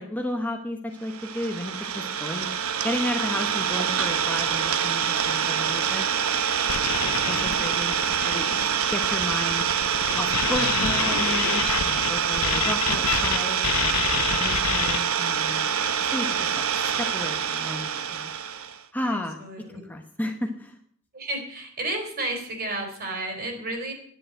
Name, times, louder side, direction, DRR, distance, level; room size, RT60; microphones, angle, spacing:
voice 1, 0.0-2.5 2.8-6.0 7.3-7.9 8.3-8.4 8.9-9.7 10.1-15.6 16.0-16.6 17.0-18.3 18.9-20.8, left 1 dB, 10° left, 3 dB, 1.1 m, -33 dB
Idling, 1.1-18.8, right 7 dB, 65° right, 1.0 m, -26 dB
sound 1, 6.7-13.4 13.6-15.0, left 9 dB, 70° left, 0.6 m, -28 dB
voice 2, 7.2-8.8 19.0-19.9 21.1-23.9, right 2 dB, 45° right, 3 dB, 4.0 m, -34 dB
11.0 x 10.0 x 7.8 m, 0.64 s
head